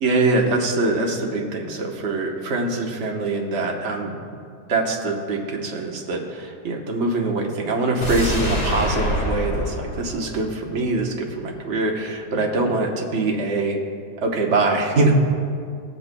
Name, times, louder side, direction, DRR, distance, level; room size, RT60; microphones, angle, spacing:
voice 1, 0.0-4.1 4.7-13.8 14.2-15.1, right 2 dB, 45° right, 1 dB, 1.2 m, -23 dB
sound 1, 8.0-11.1 11.5-11.6, equal, 40° left, 2.5 m, -26 dB
17.5 x 7.8 x 2.2 m, 2.2 s
omnidirectional pair, 1.8 m